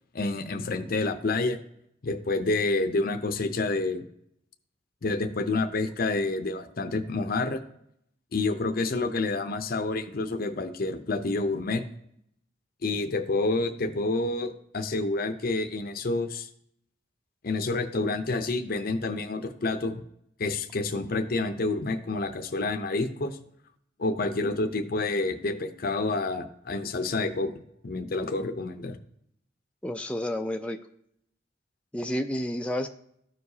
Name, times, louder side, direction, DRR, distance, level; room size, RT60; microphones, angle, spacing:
voice 1, 0.1-1.6 2.0-4.0 5.0-7.6 8.3-11.8 12.8-16.5 17.4-20.0 20.4-23.4 24.0-27.5 27.8-29.0, left 3 dB, 50° left, 7 dB, 0.6 m, -28 dB
voice 2, 29.8-30.8 31.9-32.9, left 1 dB, 5° left, 4 dB, 0.4 m, -30 dB
13.5 x 4.7 x 2.7 m, 0.72 s
head